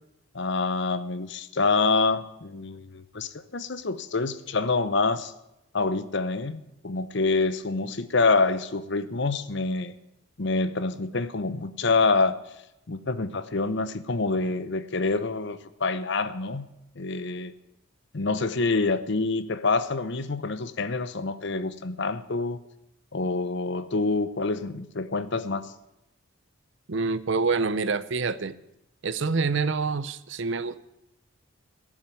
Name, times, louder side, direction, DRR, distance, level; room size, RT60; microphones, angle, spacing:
voice 1, 0.3-5.3 5.7-9.9 10.4-12.4 12.9-16.7 17.0-17.5 18.1-22.6 23.1-25.6, left 3 dB, 55° left, 14 dB, 0.8 m, -26 dB
voice 2, 26.9-28.5 29.0-30.8, right 4 dB, 55° right, 16 dB, 0.6 m, -26 dB
12.0 x 7.4 x 9.3 m, 0.89 s
head